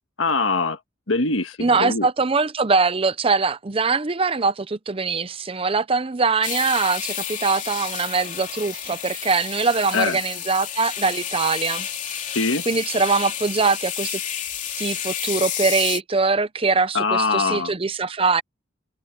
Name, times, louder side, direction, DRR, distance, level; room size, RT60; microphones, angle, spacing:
voice 1, 0.2-0.8 1.1-2.1 9.9-10.2 12.3-12.6 16.9-17.7, left 4 dB, 90° left, 1.6 m, -22 dB
voice 2, 1.6-12.2 12.7-14.2 14.8-18.4, right 4 dB, 30° right, 0.7 m, -22 dB
sound 1, 6.4-16.0, left 9 dB, 40° left, 3.2 m, -30 dB
head